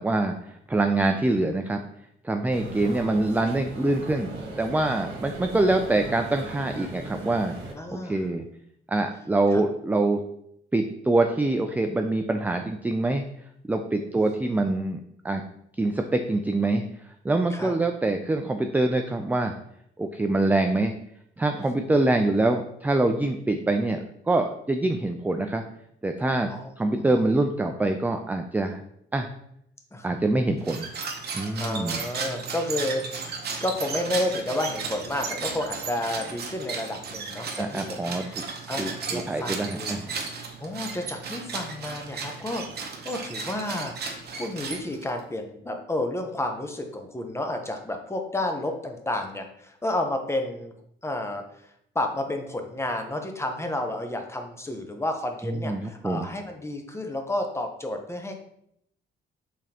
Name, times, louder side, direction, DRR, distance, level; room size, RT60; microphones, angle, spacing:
voice 1, 0.0-1.8 2.2-4.3 4.6-7.5 7.9-8.5 8.9-10.2 10.7-13.2 13.7-15.4 15.8-16.8 17.2-19.5 20.0-20.9 21.4-25.6 26.0-28.8 29.1-29.3 30.0-30.9 31.3-32.0 37.6-38.4 38.8-40.2 55.4-56.3, right 2 dB, 10° right, 5 dB, 0.3 m, -25 dB
sound 1, 2.5-7.7, right 2 dB, 80° right, 1.3 m, -38 dB
voice 2, 7.7-8.3 9.5-9.6 14.1-14.7 17.5-17.7 21.5-22.0 26.5-27.2 29.9-30.2 31.6-33.0 33.6-40.0 40.2-50.7 51.0-51.4 51.9-58.4, left 1 dB, 15° left, 4 dB, 0.7 m, -31 dB
sound 2, 30.6-45.2, right 5 dB, 55° right, 0.9 m, -35 dB
5.1 x 3.6 x 2.9 m, 0.73 s
cardioid pair, 90°, 20 cm